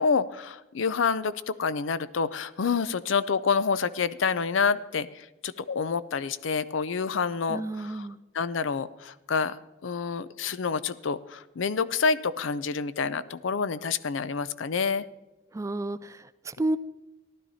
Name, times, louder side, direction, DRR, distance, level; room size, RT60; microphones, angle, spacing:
voice 1, 0.0-8.1 8.3-9.6 9.8-15.0, left 5 dB, 75° left, 15 dB, 0.5 m, -28 dB
voice 2, 7.5-8.2 15.5-16.8, right 2 dB, 15° right, 15 dB, 0.4 m, -31 dB
15.0 x 11.5 x 4.2 m, 1.1 s
head